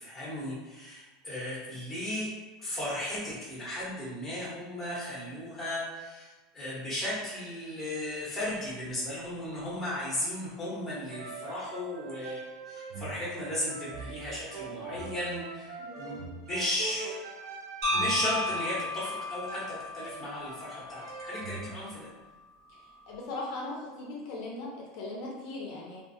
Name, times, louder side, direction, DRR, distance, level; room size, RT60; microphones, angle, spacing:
voice 1, 0.0-2.3 2.6-17.2 17.9-22.1, left 1 dB, 10° left, -8 dB, 1.0 m, -35 dB
sound 1, 11.1-21.8, right 3 dB, 75° right, 0.4 m, -42 dB
voice 2, 15.8-16.2 23.1-26.0, left 2 dB, 60° left, -3 dB, 0.5 m, -39 dB
sound 2, 17.8-21.9, left 2 dB, 55° right, 0.8 m, -34 dB
2.4 x 2.3 x 2.6 m, 1.2 s
supercardioid pair, 160°, 2 cm